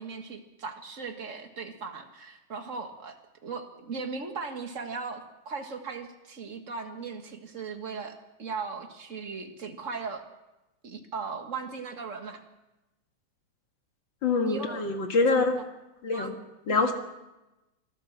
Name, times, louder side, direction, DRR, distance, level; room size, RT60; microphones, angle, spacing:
voice 1, 0.0-3.2 3.4-10.2 10.8-12.4 14.4-14.9 15.3-15.6 16.1-16.3 16.7-16.9, right 4 dB, 35° right, 5 dB, 1.4 m, -38 dB
voice 2, 14.2-15.6 16.0-16.3 16.7-16.9, left 3 dB, 45° left, 4 dB, 2.1 m, -25 dB
25.0 x 14.0 x 7.3 m, 1.0 s
omnidirectional pair, 3.4 m